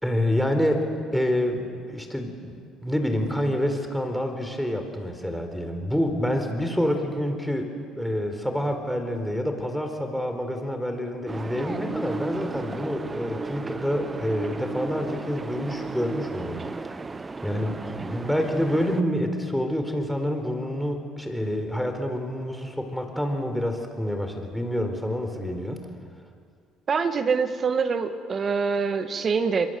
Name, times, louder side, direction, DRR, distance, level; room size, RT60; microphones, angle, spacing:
voice 1, 0.0-7.7 8.0-16.8 17.4-25.8, equal, ahead, 4 dB, 4.3 m, -27 dB
sound 1, 11.3-19.0, right 3 dB, 25° right, 0.9 m, -34 dB
voice 2, 26.9-29.7, right 5 dB, 40° right, 9 dB, 1.9 m, -25 dB
27.5 x 22.5 x 7.9 m, 2.2 s
supercardioid pair, 85°, 0 cm